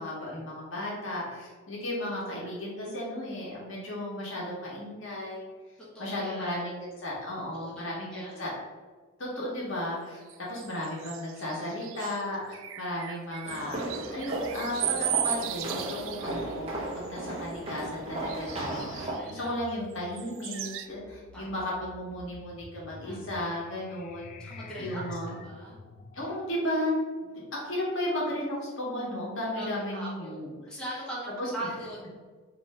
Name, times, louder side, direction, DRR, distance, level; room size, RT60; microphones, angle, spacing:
voice 1, 0.0-5.5 6.0-8.5 9.2-24.3 24.8-25.3 26.1-27.0 27.3-30.6 31.4-31.5, left 1 dB, 70° left, -4 dB, 1.3 m, -34 dB
voice 2, 5.9-6.6 7.3-8.4 18.9-19.5 21.3-21.5 23.0-23.2 24.4-25.0 25.4-25.8 29.5-30.4 30.7-32.2, right 1 dB, 5° left, -8 dB, 1.0 m, -41 dB
sound 1, 10.3-16.5 16.9-17.6 18.3-19.7 20.2-20.9, right 11 dB, 70° right, 0.3 m, -36 dB
sound 2, 13.4-19.2, right 1 dB, 30° right, 0.8 m, -35 dB
sound 3, 18.5-26.3, left 3 dB, 40° left, 0.3 m, -48 dB
3.3 x 3.0 x 4.2 m, 1.4 s
head